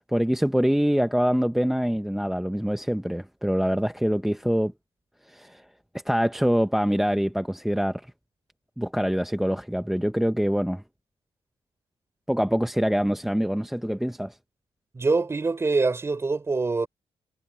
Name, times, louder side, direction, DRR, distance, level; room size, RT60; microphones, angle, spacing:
voice 1, 0.0-4.7 5.3-5.7 6.0-8.1 8.8-10.8 12.3-14.4, equal, 5° right, 0.8 m, -25 dB
voice 2, 14.9-16.9, right 3 dB, 25° right, 4.7 m, -24 dB
cardioid pair, 120°, 10 cm